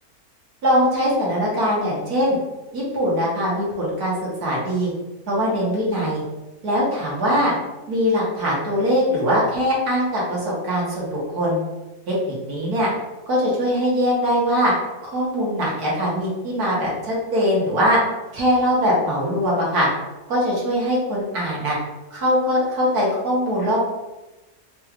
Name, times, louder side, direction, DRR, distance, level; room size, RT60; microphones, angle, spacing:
voice 1, 0.6-2.4 2.7-4.9 5.3-6.2 6.6-7.5 7.9-11.6 12.1-12.9 13.3-14.7 15.0-18.0 18.3-19.9 20.3-21.8 22.1-23.9, equal, 80° right, -5 dB, 1.9 m, -21 dB
4.7 x 2.4 x 3.1 m, 1.1 s
omnidirectional pair, 1.6 m